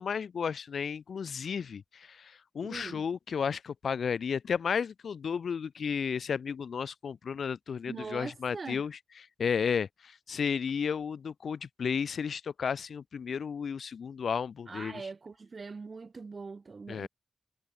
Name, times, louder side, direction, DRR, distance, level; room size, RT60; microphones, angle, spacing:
voice 1, 0.0-9.0 9.4-15.0 16.9-17.1, left 6 dB, 90° left, 5.3 m, -33 dB
voice 2, 2.6-3.0 7.9-8.8 14.7-17.1, right 4 dB, 65° right, 6.4 m, -42 dB
cardioid pair, 45°, 0 cm